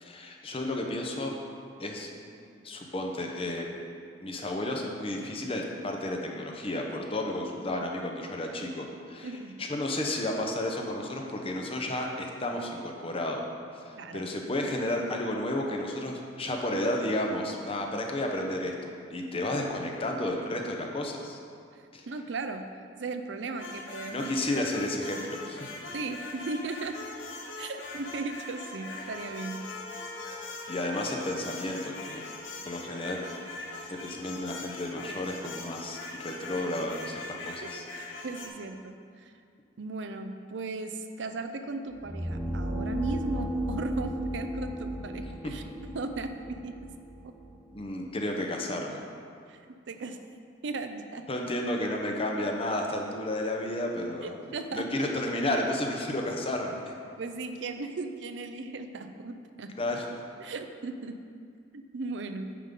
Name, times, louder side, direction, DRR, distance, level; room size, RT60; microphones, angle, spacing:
voice 1, 0.0-1.4 1.8-2.1 2.6-3.6 4.2-9.3 9.6-13.5 13.8-21.4 21.9-22.1 24.1-25.8 30.7-32.2 32.7-33.2 33.9-36.0 36.2-37.8 45.4-45.5 47.7-49.0 51.3-54.4 54.7-56.9 59.8-60.2, left 1 dB, 30° left, 1 dB, 0.7 m, -32 dB
voice 2, 9.2-9.6 13.9-14.2 21.7-24.3 24.5-24.7 25.9-27.0 27.6-29.7 37.6-37.9 38.2-39.3 39.8-45.6 45.9-46.7 49.5-49.6 49.9-50.3 50.6-51.3 54.2-54.9 57.2-59.8 60.4-61.3 61.7-62.6, right 3 dB, 70° right, 8 dB, 0.5 m, -37 dB
sound 1, 23.6-38.5, left 3 dB, 85° left, 1.0 m, -42 dB
sound 2, 28.9-35.4, left 2 dB, 55° left, 1.0 m, -47 dB
sound 3, 41.9-47.8, right 1 dB, 10° right, 0.7 m, -34 dB
9.2 x 5.3 x 3.7 m, 2.3 s
head